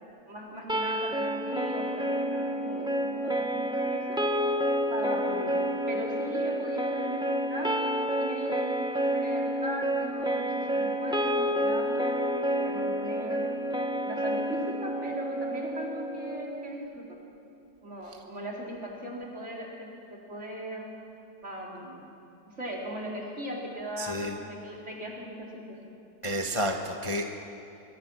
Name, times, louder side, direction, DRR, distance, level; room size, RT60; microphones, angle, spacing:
voice 1, 0.3-4.2 4.9-5.6 5.9-12.3 12.6-13.5 14.0-17.2 17.8-20.9 21.4-22.1 22.5-25.8, equal, 45° right, -2 dB, 4.0 m, -39 dB
sound 1, 0.7-16.7, equal, 5° right, 0.7 m, -29 dB
voice 2, 24.0-24.4 26.2-27.2, equal, 20° left, 2 dB, 1.1 m, -30 dB
23.5 x 23.0 x 6.1 m, 2.7 s
omnidirectional pair, 1.7 m